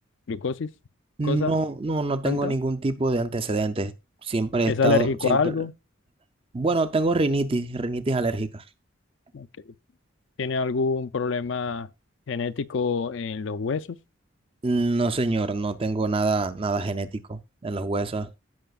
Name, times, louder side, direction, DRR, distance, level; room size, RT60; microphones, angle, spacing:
voice 1, 0.3-0.7 1.2-1.5 2.2-2.5 4.7-5.7 9.3-9.5 10.4-11.9 12.3-14.0, left 5 dB, 60° left, 0.4 m, -26 dB
voice 2, 1.2-3.9 4.2-5.5 6.5-8.6 14.6-18.4, right 3 dB, 25° right, 0.5 m, -25 dB
16.0 x 5.6 x 2.4 m
head